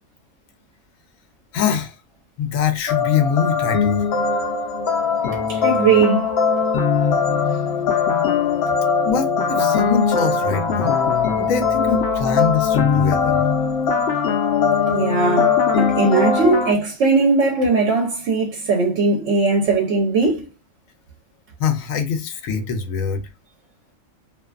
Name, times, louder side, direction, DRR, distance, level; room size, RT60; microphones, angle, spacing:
voice 1, 1.5-2.0 2.4-4.0 9.0-11.0 11.3-13.4 21.6-23.2, left 6 dB, 80° left, 1.0 m, -23 dB
sound 1, 2.9-16.7, left 5 dB, 65° left, 0.7 m, -20 dB
voice 2, 5.5-6.3 14.9-20.5, right 3 dB, 65° right, 0.9 m, -19 dB
2.5 x 2.3 x 2.3 m
omnidirectional pair, 1.4 m